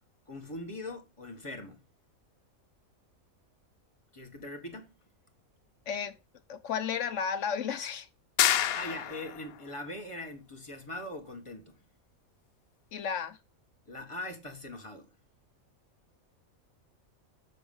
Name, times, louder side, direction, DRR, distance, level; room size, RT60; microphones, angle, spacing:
voice 1, 0.3-1.8 4.1-4.9 8.7-11.8 13.9-15.1, left 1 dB, 20° left, 1.6 m, -41 dB
voice 2, 5.9-6.2 6.5-8.1 12.9-13.4, left 7 dB, 60° left, 1.1 m, -33 dB
sound 1, 8.4-9.5, left 11 dB, 90° left, 1.1 m, -27 dB
7.1 x 6.4 x 5.4 m
omnidirectional pair, 1.5 m